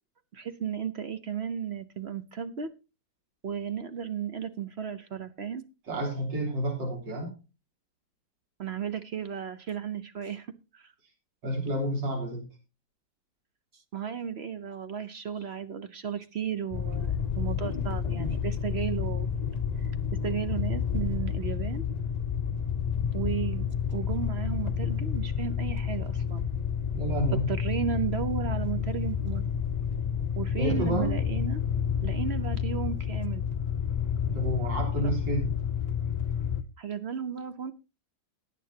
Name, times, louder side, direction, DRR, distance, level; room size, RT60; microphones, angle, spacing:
voice 1, 0.3-2.7 3.4-5.6 8.6-10.5 10.7-10.9 13.7-19.3 19.8-19.9 20.2-21.9 23.1-26.4 27.5-29.4 30.4-31.6 32.0-33.4 36.8-37.7, right 7 dB, 50° right, 11 dB, 0.8 m, -34 dB
voice 2, 5.9-7.3 11.4-12.5 26.9-27.5 30.6-31.2 34.3-35.5, right 1 dB, 80° right, 1 dB, 4.1 m, -30 dB
sound 1, 16.7-36.6, left 7 dB, 85° left, 0.3 m, -30 dB
18.0 x 9.5 x 2.8 m, 0.30 s
omnidirectional pair, 2.0 m